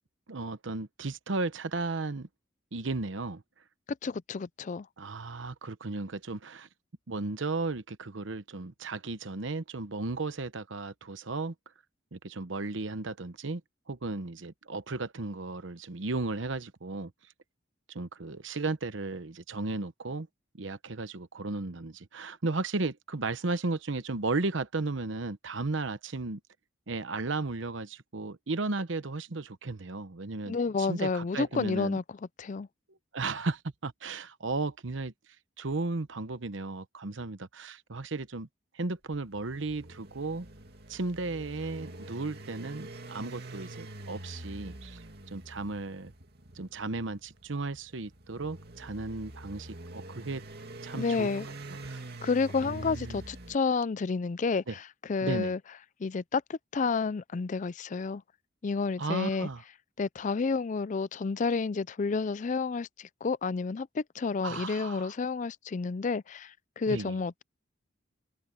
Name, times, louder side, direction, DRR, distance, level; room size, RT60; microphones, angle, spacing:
voice 1, 0.3-2.3 2.7-3.4 5.0-6.7 7.1-11.5 12.1-13.6 13.9-17.1 17.9-20.3 20.5-26.4 26.9-32.0 32.9-35.1 35.6-38.5 38.7-40.5 40.9-45.0 45.3-46.1 46.5-50.4 50.8-51.3 51.7-52.0 52.6-53.2 54.7-54.8 55.2-55.5 59.0-59.6 64.4-65.1 66.9-67.2, right 3 dB, 75° right, 0.9 m, -35 dB
voice 2, 4.0-4.9 30.5-32.0 32.4-32.7 50.9-51.5 52.2-54.8 55.1-55.6 56.0-58.2 58.6-59.5 60.0-67.4, left 4 dB, 40° left, 0.4 m, -30 dB
sound 1, 39.1-53.6, right 2 dB, 55° right, 2.7 m, -45 dB
open air
head